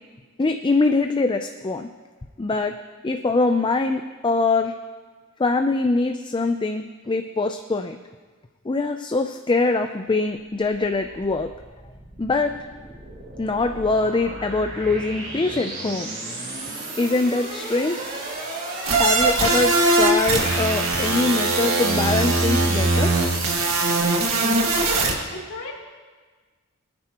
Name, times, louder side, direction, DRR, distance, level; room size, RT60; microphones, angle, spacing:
voice 1, 0.4-1.9 2.4-2.7 3.0-4.7 5.4-8.0 8.7-11.5 12.2-12.5 13.4-16.1 16.9-18.1 18.9-23.1, left 3 dB, 25° left, 6 dB, 0.4 m, -23 dB
sound 1, 10.4-24.0, right 2 dB, 45° right, 4.2 m, -33 dB
sound 2, 18.9-25.1, right 2 dB, 75° right, 1.8 m, -21 dB
voice 2, 24.2-24.8 25.3-25.7, left 3 dB, 80° left, -2 dB, 2.6 m, -34 dB
25.5 x 9.7 x 2.9 m, 1.4 s
head